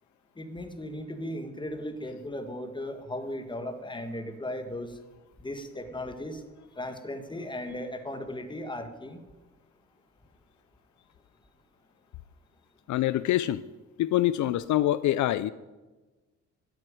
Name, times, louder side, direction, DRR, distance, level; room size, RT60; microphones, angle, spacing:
voice 1, 0.4-5.0 5.4-6.4 6.8-9.2, left 1 dB, 15° left, 7 dB, 1.8 m, -36 dB
voice 2, 12.9-13.6 14.0-15.5, left 13 dB, 70° left, 16 dB, 0.5 m, -25 dB
12.5 x 7.9 x 9.1 m, 1.2 s
cardioid pair, 90°, 30 cm